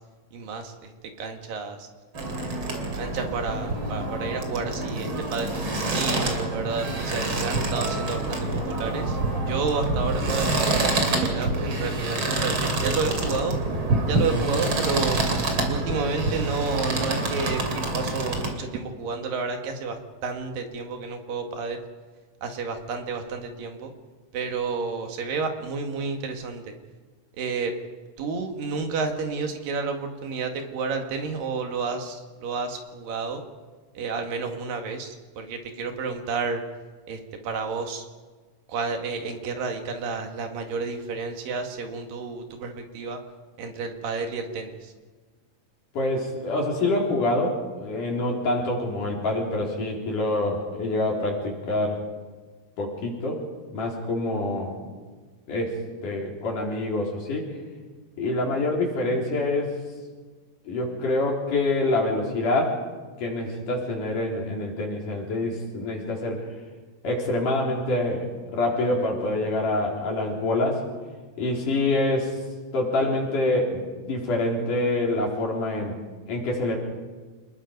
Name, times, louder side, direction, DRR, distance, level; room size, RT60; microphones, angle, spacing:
voice 1, 0.3-0.9 1.2-1.9 2.9-9.2 9.5-13.6 14.1-15.2 15.7-21.8 22.4-23.9 24.3-26.7 27.4-27.7 28.2-33.4 34.0-36.6 37.1-38.1 38.7-43.2 43.6-44.8, right 4 dB, 80° right, 5 dB, 3.6 m, -30 dB
sound 1, 2.1-18.5, right 2 dB, 40° right, 3.4 m, -27 dB
voice 2, 45.9-52.0 52.8-53.4 53.7-54.8 55.5-55.7 56.0-57.5 58.2-59.7 60.7-62.8 63.2-66.4 67.0-70.8 71.4-72.4 72.7-76.0 76.3-76.8, left 2 dB, 65° left, -1 dB, 5.5 m, -26 dB
28.5 x 20.0 x 5.4 m, 1.4 s
omnidirectional pair, 3.9 m